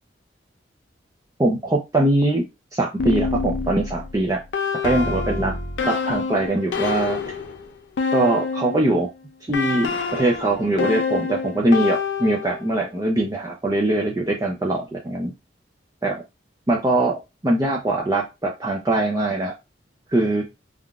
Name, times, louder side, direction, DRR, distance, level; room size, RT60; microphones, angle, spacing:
voice 1, 1.4-2.4 2.7-4.4 4.8-5.5 5.9-7.2 8.1-9.1 9.5-15.3 16.0-16.2 16.7-19.5 20.1-20.5, right 2 dB, 20° right, -1 dB, 0.5 m, -22 dB
sound 1, 3.0-8.9 9.5-12.7, left 4 dB, 90° left, 0.5 m, -27 dB
3.5 x 2.4 x 2.3 m, 0.23 s
head